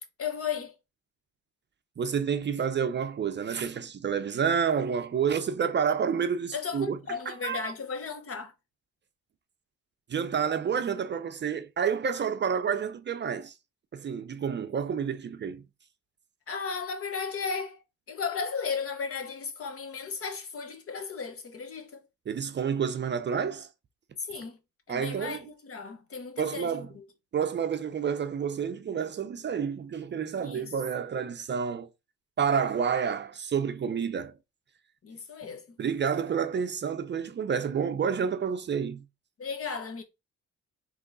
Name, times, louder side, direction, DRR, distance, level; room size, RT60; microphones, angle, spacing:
voice 1, 0.2-0.7 6.5-8.5 16.5-17.8 18.1-22.0 24.2-24.6 24.9-27.0 30.4-30.7 35.0-35.7 39.4-40.0, left 6 dB, 50° left, 1.1 m, -35 dB
voice 2, 2.0-7.0 7.3-7.7 10.1-13.5 13.9-15.6 22.3-23.7 24.9-25.5 26.4-26.9 27.3-31.9 32.4-34.3 35.8-39.0, right 7 dB, 40° right, 0.5 m, -29 dB
3.5 x 3.1 x 3.9 m
cardioid pair, 90°, 30 cm